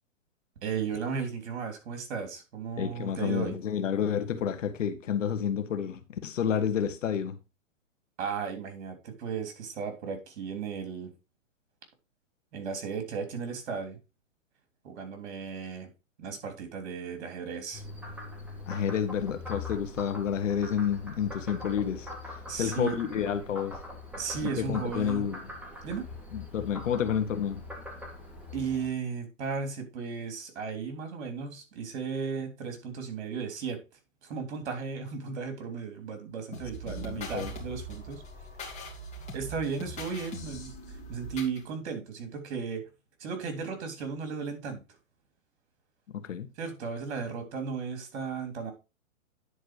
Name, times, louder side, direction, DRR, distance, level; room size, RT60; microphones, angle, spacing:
voice 1, 0.6-3.6 8.2-11.1 12.5-14.0 14.8-15.9 16.2-17.8 22.5-23.0 24.2-25.2 25.8-26.1 28.5-33.8 34.2-38.2 39.3-40.7 41.1-42.8 43.2-44.8 46.6-48.7, right 5 dB, 55° right, 3.3 m, -35 dB
voice 2, 2.8-7.4 18.7-22.1 22.6-23.8 24.4-25.4 26.3-27.6 36.9-37.5 46.1-46.5, left 8 dB, 70° left, 1.4 m, -30 dB
Frog, 17.7-28.9, left 2 dB, 5° right, 2.2 m, -42 dB
sound 1, 36.5-41.6, equal, 15° left, 2.7 m, -41 dB
9.9 x 4.4 x 4.7 m
hypercardioid pair, 130°, 39 cm